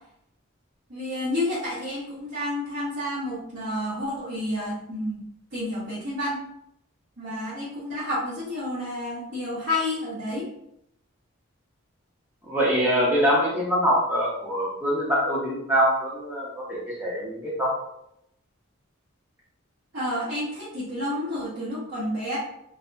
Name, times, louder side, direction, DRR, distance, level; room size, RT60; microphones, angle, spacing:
voice 1, 0.9-5.2 5.5-6.4 7.2-10.5 19.9-22.4, left 1 dB, 55° right, -12 dB, 1.0 m, -30 dB
voice 2, 12.5-17.7, equal, 10° right, -5 dB, 0.7 m, -24 dB
2.6 x 2.5 x 2.2 m, 0.77 s
head